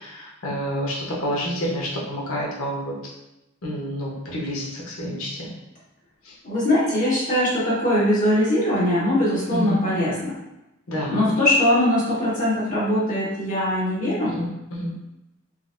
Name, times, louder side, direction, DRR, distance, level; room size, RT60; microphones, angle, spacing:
voice 1, 0.0-3.0 3.6-5.5 6.2-6.3 9.5-9.8 10.9-11.3 14.2-14.9, equal, 80° left, -4 dB, 0.8 m, -29 dB
voice 2, 6.4-10.3 11.1-14.4, left 1 dB, 40° left, -8 dB, 1.2 m, -21 dB
3.9 x 2.0 x 2.5 m, 0.94 s
head